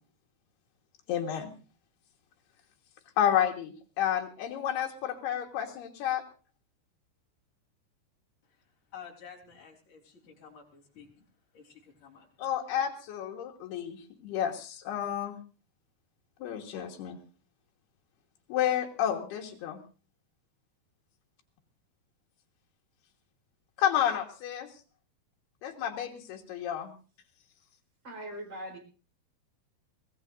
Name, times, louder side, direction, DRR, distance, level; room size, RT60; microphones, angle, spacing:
voice 1, 1.1-1.5 3.2-6.2 12.4-15.4 16.4-17.2 18.5-19.8 23.8-24.7 25.6-27.0, left 10 dB, 85° left, 3.6 m, -30 dB
voice 2, 8.9-11.1 11.5-12.3, left 7 dB, 55° left, 5.0 m, -50 dB
voice 3, 28.0-28.8, equal, 30° right, 4.5 m, -40 dB
23.5 x 17.5 x 2.6 m
omnidirectional pair, 4.5 m